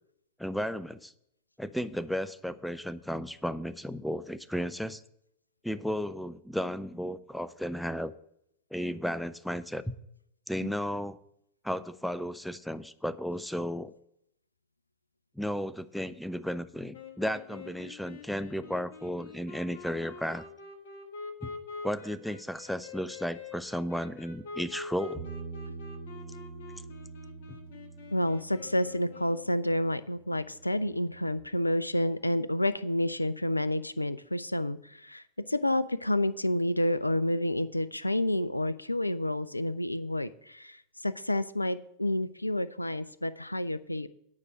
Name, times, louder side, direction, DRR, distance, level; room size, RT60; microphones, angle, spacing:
voice 1, 0.4-1.1 1.6-5.0 5.6-8.1 8.7-9.9 10.5-11.2 11.6-13.9 15.4-20.5 21.4-21.5 21.8-25.3, equal, ahead, 14 dB, 0.4 m, -34 dB
sound 1, 16.9-29.6, left 4 dB, 55° left, 1.3 m, -45 dB
Bass guitar, 25.2-31.4, right 4 dB, 25° left, 1.5 m, -46 dB
voice 2, 28.1-44.1, left 1 dB, 85° left, 16 dB, 0.3 m, -29 dB
9.7 x 4.8 x 7.6 m, 0.74 s
figure-of-eight pair, 90°, 0 cm